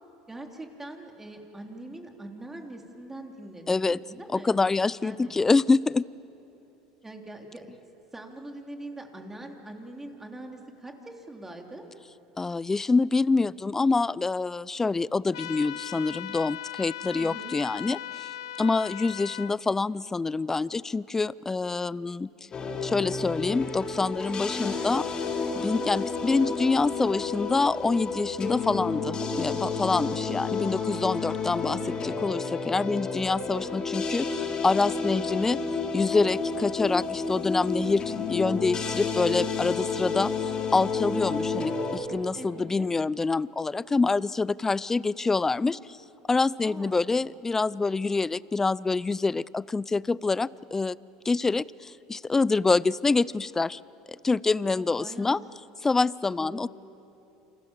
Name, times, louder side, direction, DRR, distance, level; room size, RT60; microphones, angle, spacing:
voice 1, 0.3-4.6 5.0-5.3 7.0-7.8 8.1-11.9 17.1-17.6 24.5-25.0 42.3-42.9 46.6-47.0 54.7-55.5 56.4-56.7, right 1 dB, 10° right, 2 dB, 3.5 m, -42 dB
voice 2, 3.7-4.0 4.3-6.0 12.4-18.3 18.6-22.3 22.8-25.0 25.6-35.6 35.9-46.0 46.3-51.0 51.2-53.8 54.2-55.4 55.8-56.7, left 3 dB, 15° left, 21 dB, 0.5 m, -26 dB
sound 1, 15.3-19.5, left 13 dB, 85° left, 0.8 m, -38 dB
sound 2, 22.5-42.0, left 4 dB, 35° left, 3.8 m, -31 dB
28.5 x 26.5 x 7.5 m, 3.0 s
supercardioid pair, 95°, 3 cm